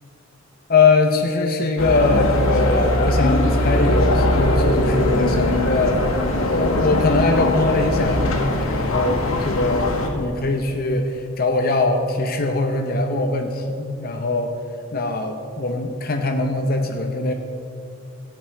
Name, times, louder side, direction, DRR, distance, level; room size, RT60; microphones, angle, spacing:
voice 1, 0.7-6.0 6.5-14.5 14.9-17.3, left 3 dB, 45° left, 4 dB, 0.7 m, -21 dB
sound 1, 1.8-10.1, left 1 dB, 80° left, 1.7 m, -20 dB
14.5 x 5.4 x 8.4 m, 2.7 s
head